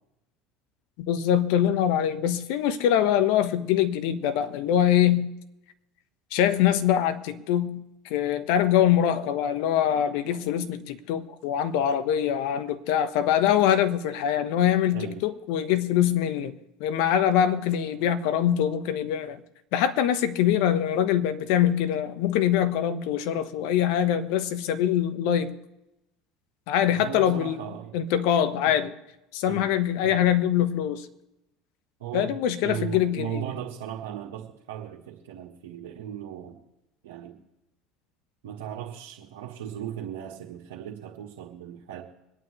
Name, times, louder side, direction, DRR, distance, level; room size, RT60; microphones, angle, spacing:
voice 1, 1.0-5.3 6.3-7.8 8.1-16.5 16.8-19.4 19.7-25.5 26.7-27.6 27.9-28.9 29.3-31.1 32.1-33.4, left 10 dB, 70° left, 1.1 m, -23 dB
voice 2, 14.9-15.3 26.9-28.0 28.6-28.7 29.5-29.7 30.0-30.3 32.0-36.6 37.0-37.4 38.4-42.0, right 10 dB, 80° right, 1.6 m, -37 dB
25.5 x 9.2 x 3.2 m
hypercardioid pair, 80°, 0 cm